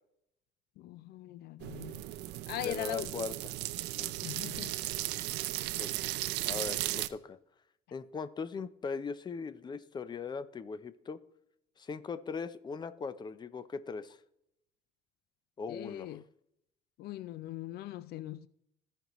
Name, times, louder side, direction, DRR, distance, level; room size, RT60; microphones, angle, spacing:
voice 1, 0.8-2.0 2.5-3.2 4.2-4.7 15.7-16.2 17.0-18.5, left 14 dB, 70° left, 0.4 m, -40 dB
sound 1, 1.6-7.1, right 16 dB, 85° right, 0.5 m, -36 dB
voice 2, 2.6-3.5 3.9-4.1 5.6-6.2 6.4-7.4 7.9-11.2 11.8-14.2 15.6-16.2, left 5 dB, 25° left, 0.6 m, -40 dB
15.5 x 5.3 x 3.0 m
cardioid pair, 110°, 17 cm